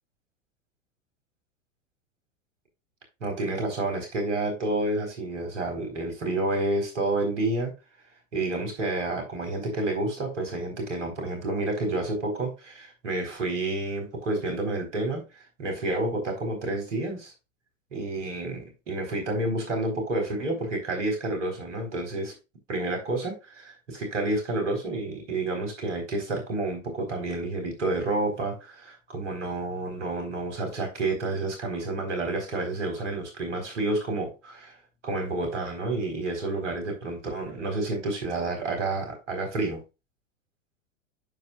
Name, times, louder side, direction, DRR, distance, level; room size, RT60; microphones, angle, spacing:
voice 1, 3.2-7.7 8.3-17.3 17.9-22.3 22.7-34.8 35.0-39.8, right 2 dB, 65° right, 4.1 m, -29 dB
9.5 x 7.5 x 2.4 m
figure-of-eight pair, 95°, 39 cm